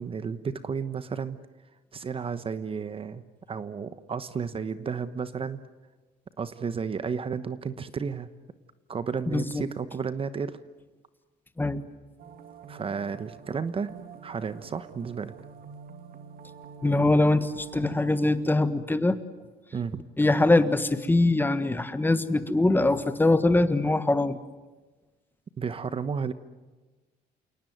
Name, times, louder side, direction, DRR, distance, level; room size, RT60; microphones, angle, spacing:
voice 1, 0.0-1.4 1.9-5.6 6.4-8.3 8.9-10.6 12.7-13.9 14.2-15.3 17.8-17.9 19.7-20.0 25.6-26.3, right 6 dB, 35° right, 13 dB, 1.1 m, -32 dB
voice 2, 9.3-9.6 11.6-11.8 16.8-19.2 20.2-24.4, left 2 dB, 10° left, 11 dB, 1.5 m, -23 dB
sound 1, 12.2-18.3, right 7 dB, 60° right, 2.2 m, -47 dB
29.0 x 18.5 x 9.4 m, 1.3 s
cardioid pair, 110°, 17 cm